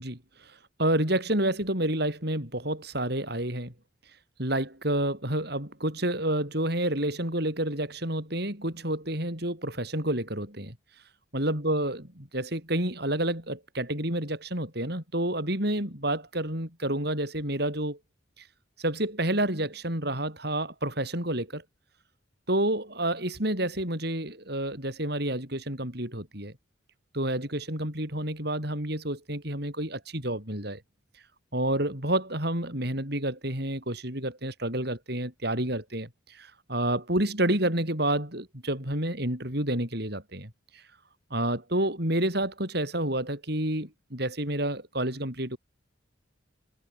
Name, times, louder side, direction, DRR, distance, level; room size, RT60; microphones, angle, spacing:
voice 1, 0.0-3.7 4.4-10.7 11.3-18.0 18.4-18.5 18.8-21.6 22.5-26.5 27.1-30.8 31.5-40.8 41.3-45.6, right 1 dB, 55° right, 7.9 m, -29 dB
head